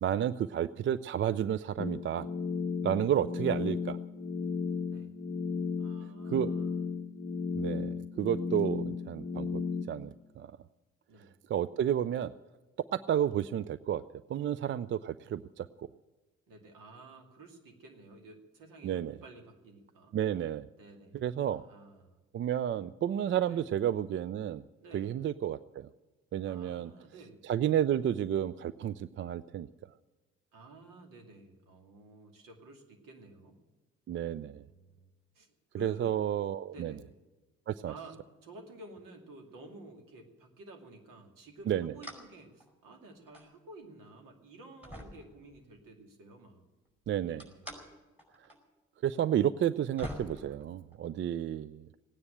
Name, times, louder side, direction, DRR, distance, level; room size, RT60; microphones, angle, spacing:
voice 1, 0.0-2.3 2.8-4.0 6.3-6.5 7.5-9.6 9.9-10.5 11.5-12.3 13.1-14.0 14.3-15.9 18.8-19.2 20.1-20.7 21.1-21.6 22.3-24.6 24.9-25.9 26.3-26.9 27.4-29.7 34.1-34.6 35.8-36.9 37.7-37.9 41.7-41.9 47.1-47.4 49.0-51.9, right 10 dB, 35° right, 16 dB, 0.4 m, -31 dB
sound 1, 1.8-9.8, left 5 dB, 25° left, 0.9 m, -34 dB
voice 2, 5.8-6.8 11.1-11.3 16.5-20.1 20.8-22.2 23.5-23.7 24.8-25.1 26.4-27.4 30.5-33.6 34.3-35.0 35.3-36.2 36.7-37.1 37.9-46.6 47.3-47.8, right 2 dB, 60° right, 4 dB, 2.5 m, -52 dB
sound 2, 42.0-42.3 42.6-43.5 44.1-44.2 44.8-45.9 47.4-47.8 48.2-48.6 48.8-48.9 49.6-49.7 50.0-51.2, equal, 5° right, 5.1 m, -45 dB
17.0 x 9.6 x 8.8 m, 1.2 s
figure-of-eight pair, 45°, 36 cm